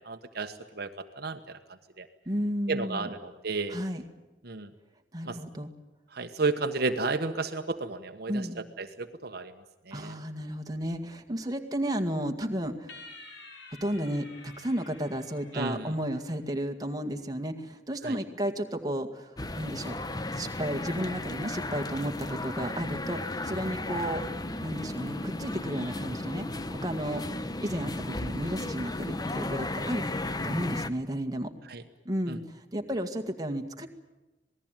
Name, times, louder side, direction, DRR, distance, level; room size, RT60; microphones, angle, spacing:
voice 1, 0.0-1.6 2.0-2.1 2.7-3.8 4.4-4.7 5.2-5.4 6.1-9.5 9.9-10.2 15.5-15.9 18.0-18.2 31.7-31.8 32.3-32.4, right 3 dB, 60° right, 6 dB, 1.3 m, -33 dB
voice 2, 2.3-3.1 3.7-4.0 5.1-5.7 8.3-8.6 9.9-13.0 13.8-20.0 20.3-24.2 24.6-30.0 30.4-31.5 32.1-33.9, equal, 20° right, 4 dB, 2.0 m, -33 dB
sound 1, 12.9-16.4, left 2 dB, 80° left, 6.1 m, -50 dB
sound 2, 19.4-30.9, left 2 dB, 20° left, 1.0 m, -34 dB
27.0 x 19.5 x 9.2 m, 1.1 s
head